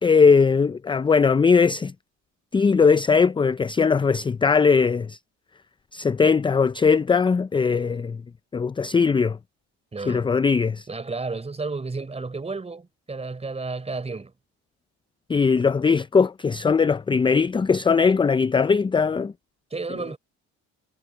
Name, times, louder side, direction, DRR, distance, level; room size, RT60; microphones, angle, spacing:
voice 1, 0.0-1.9 2.5-5.2 5.9-8.2 8.5-9.4 10.1-10.9 15.3-19.3, left 5 dB, 15° left, 0.5 m, -20 dB
voice 2, 9.9-10.3 10.9-14.3 19.7-20.2, right 3 dB, 20° right, 4.3 m, -32 dB
supercardioid pair, 90°, 31 cm